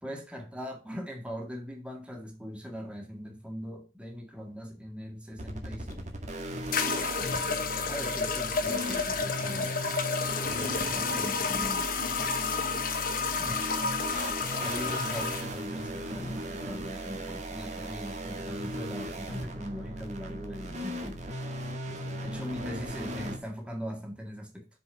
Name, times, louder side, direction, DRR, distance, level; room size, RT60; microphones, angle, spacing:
voice 1, 0.0-6.1 7.9-9.8 10.5-11.8 13.4-13.6 14.6-21.3 22.2-24.7, equal, 5° right, 1.9 m, -40 dB
sound 1, 5.3-23.4, right 1 dB, 45° right, 1.9 m, -37 dB
sound 2, 5.9-6.0 6.7-15.5, left 5 dB, 55° left, 1.2 m, -30 dB
voice 2, 7.1-8.0 8.7-9.0 12.0-12.4 21.8-22.2 22.6-22.7, equal, 75° right, 1.6 m, -47 dB
6.9 x 5.2 x 5.1 m
head